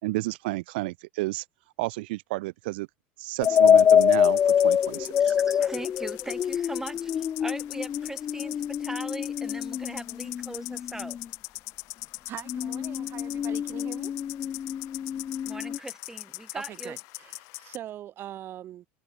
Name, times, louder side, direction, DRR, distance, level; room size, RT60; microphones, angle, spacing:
voice 1, 0.0-1.4 1.8-2.9 3.2-5.3, right 21 dB, 80° right, 1.7 m, -31 dB
sound 1, 3.4-17.8, left 28 dB, 65° left, 3.5 m, -41 dB
sound 2, 3.4-11.3 12.5-15.8, left 8 dB, 35° left, 1.3 m, -25 dB
voice 2, 5.2-11.2 15.5-17.0, right 2 dB, 10° right, 4.2 m, -40 dB
voice 3, 12.3-14.1 16.5-18.9, right 12 dB, 45° right, 2.8 m, -42 dB
supercardioid pair, 110°, 5 cm